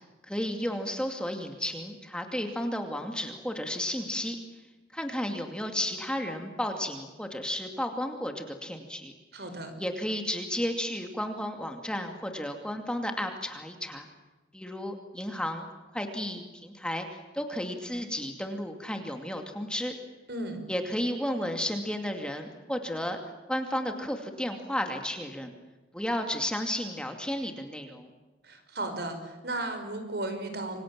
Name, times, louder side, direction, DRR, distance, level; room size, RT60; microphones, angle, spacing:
voice 1, 0.3-4.4 4.9-9.1 9.8-14.1 14.5-15.7 15.9-19.9 20.7-23.2 23.5-25.5 25.9-28.1, left 1 dB, 5° left, 4 dB, 2.5 m, -33 dB
voice 2, 9.3-9.8 20.3-20.6 28.4-30.8, right 2 dB, 65° right, 7 dB, 5.5 m, -35 dB
28.5 x 24.5 x 7.5 m, 1.1 s
head